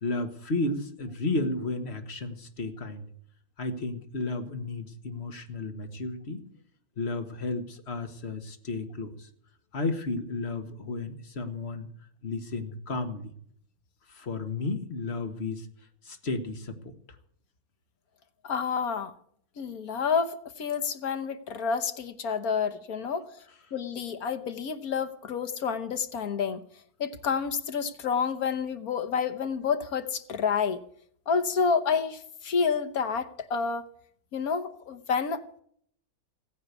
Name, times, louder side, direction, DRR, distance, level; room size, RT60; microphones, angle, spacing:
voice 1, 0.0-3.1 3.6-6.4 7.0-9.3 9.7-11.9 12.2-13.3 14.1-15.7 16.1-16.8, left 2 dB, 45° left, 6 dB, 1.9 m, -33 dB
voice 2, 18.4-19.1 19.6-23.3 23.7-26.6 27.0-30.8 31.3-33.9 34.3-35.4, left 6 dB, 75° left, 9 dB, 1.6 m, -29 dB
16.0 x 9.6 x 8.3 m, 0.64 s
omnidirectional pair, 1.6 m